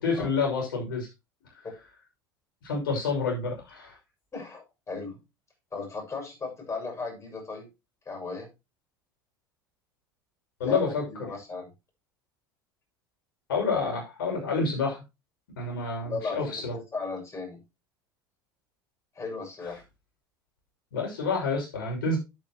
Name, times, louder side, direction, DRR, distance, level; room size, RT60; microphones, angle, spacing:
voice 1, 0.0-1.1 2.6-4.0 10.6-11.0 13.5-15.0 15.5-16.7 20.9-22.2, left 4 dB, 70° left, 0 dB, 6.3 m, -28 dB
voice 2, 4.3-5.2 5.7-7.7 8.1-8.5 10.6-11.7 16.0-17.6 19.1-19.8, left 4 dB, 25° left, 0 dB, 7.0 m, -36 dB
10.5 x 9.6 x 3.0 m, 0.25 s
figure-of-eight pair, 70°, 12 cm